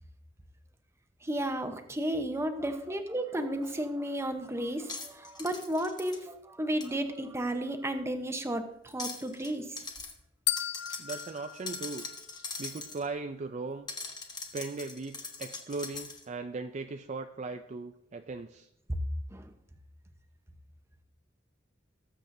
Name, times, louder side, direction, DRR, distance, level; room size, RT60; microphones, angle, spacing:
voice 1, 1.2-9.8 19.3-19.5, right 1 dB, 15° right, 7 dB, 0.8 m, -33 dB
sound 1, 3.7-3.8 4.8-6.2 6.8-6.9 8.9-9.5 9.8-10.1 10.6-13.1 13.9-16.2, left 4 dB, 20° left, 1.2 m, -41 dB
sound 2, 10.5-12.7, left 12 dB, 60° left, 0.5 m, -36 dB
voice 2, 11.0-13.9 14.5-18.7, right 3 dB, 40° right, 7 dB, 0.4 m, -38 dB
19.5 x 7.4 x 2.6 m, 0.80 s
head